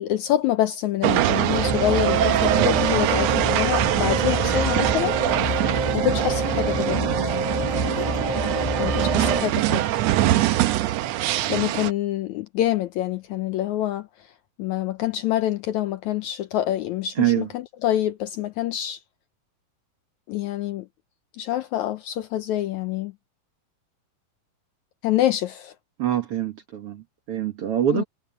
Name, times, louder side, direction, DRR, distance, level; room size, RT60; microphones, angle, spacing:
voice 1, 0.0-5.2 5.9-7.1 8.8-10.1 11.5-14.3 14.6-19.0 20.3-20.9 21.4-23.1 25.0-25.7 27.9-28.0, left 12 dB, 75° left, 1.8 m, -26 dB
sound 1, 1.0-11.9, right 14 dB, 85° right, 1.5 m, -23 dB
sound 2, 1.5-9.4, equal, 15° left, 0.8 m, -27 dB
voice 2, 17.2-17.5 26.0-28.0, right 11 dB, 55° right, 1.7 m, -24 dB
omnidirectional pair, 3.9 m